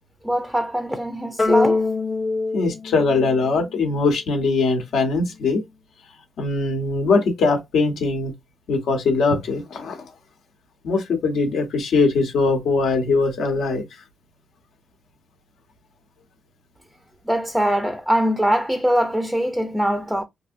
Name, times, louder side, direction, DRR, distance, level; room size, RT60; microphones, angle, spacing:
voice 1, 0.2-1.8 17.3-20.2, equal, 5° right, 0.4 m, -22 dB
sound 1, 1.4-4.0, left 3 dB, 25° left, 0.7 m, -23 dB
voice 2, 2.5-5.6 6.4-8.3 8.7-10.0 10.8-13.8, left 3 dB, 85° left, 0.9 m, -21 dB
3.1 x 2.7 x 2.5 m
wide cardioid pair, 145°, 0 cm